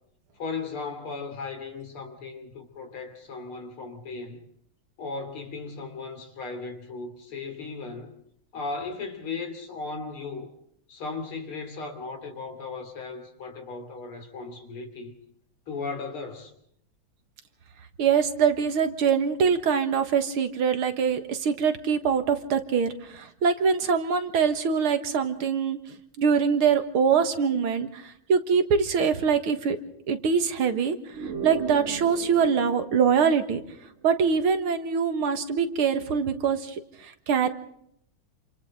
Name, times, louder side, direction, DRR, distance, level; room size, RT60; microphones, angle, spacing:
voice 1, 0.3-4.4 5.0-8.1 8.5-10.5 10.9-15.1 15.7-16.5, left 4 dB, 80° left, 4 dB, 3.8 m, -36 dB
voice 2, 18.0-25.8 26.2-29.8 30.1-31.0 31.2-33.6 34.0-36.8 37.0-37.5, right 6 dB, 80° right, 8 dB, 2.4 m, -24 dB
sound 1, 31.1-34.1, right 6 dB, 40° right, 1.3 m, -38 dB
28.0 x 27.0 x 3.8 m, 0.70 s
omnidirectional pair, 2.3 m